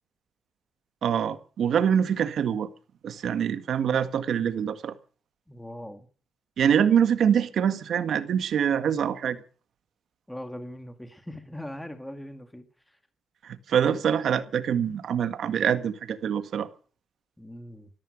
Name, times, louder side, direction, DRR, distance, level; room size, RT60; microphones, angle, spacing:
voice 1, 1.0-2.7 3.0-5.0 6.6-9.4 13.4-16.7, right 8 dB, 65° right, 1.8 m, -25 dB
voice 2, 5.5-6.1 10.3-13.0 17.4-17.9, left 1 dB, 5° left, 2.1 m, -40 dB
14.5 x 13.5 x 6.5 m
cardioid pair, 90°, 0 cm